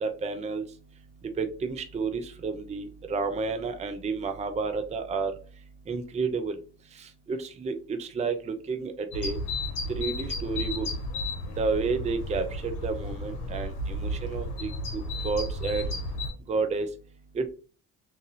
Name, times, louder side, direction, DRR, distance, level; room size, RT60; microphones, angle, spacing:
voice 1, 0.0-0.6 1.4-5.3 5.9-6.5 7.3-7.7 8.0-9.4 10.0-10.9 11.6-13.7 14.0-14.7 15.2-15.8 16.5-16.9 17.4-17.5, right 4 dB, 20° right, 7 dB, 0.4 m, -30 dB
sound 1, 9.1-16.3, left 1 dB, 65° left, 1.0 m, -33 dB
2.7 x 2.6 x 2.7 m, 0.36 s
hypercardioid pair, 50°, 40 cm